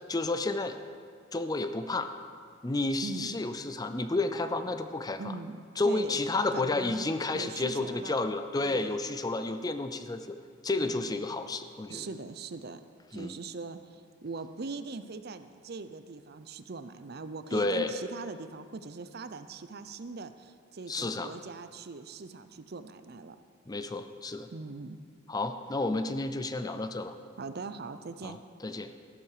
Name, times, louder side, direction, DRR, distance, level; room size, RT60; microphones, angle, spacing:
voice 1, 0.1-0.8 1.3-2.1 2.6-5.3 5.8-10.4 10.6-12.1 13.1-13.4 17.5-17.9 20.9-21.3 23.7-24.5 25.3-27.2 28.2-28.9, left 2 dB, 20° left, 9 dB, 0.5 m, -31 dB
voice 2, 3.0-3.3 5.2-6.2 6.5-8.2 8.6-9.2 10.8-11.1 11.9-12.8 13.1-23.4 24.5-25.0 27.4-28.4, right 3 dB, 50° right, 11 dB, 0.6 m, -41 dB
14.0 x 12.0 x 4.9 m, 2.1 s
head